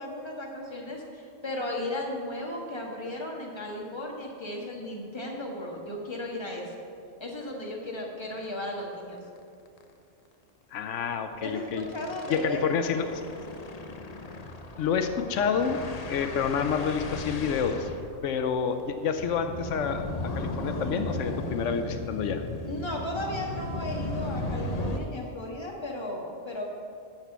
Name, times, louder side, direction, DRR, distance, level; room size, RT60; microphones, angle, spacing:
voice 1, 0.0-6.8 7.2-9.2 11.4-12.6 22.7-26.6, left 1 dB, 25° left, -1 dB, 1.4 m, -35 dB
sound 1, 8.3-8.4 8.8-8.9 9.2-9.4 9.7-9.8 11.1-25.0, left 1 dB, 40° left, 0.7 m, -36 dB
voice 2, 10.7-11.9 12.3-13.1 14.8-15.8 16.1-17.9 18.2-20.0 20.3-22.4, left 6 dB, 85° left, 8 dB, 1.0 m, -28 dB
12.0 x 4.4 x 8.0 m, 2.5 s
omnidirectional pair, 1.2 m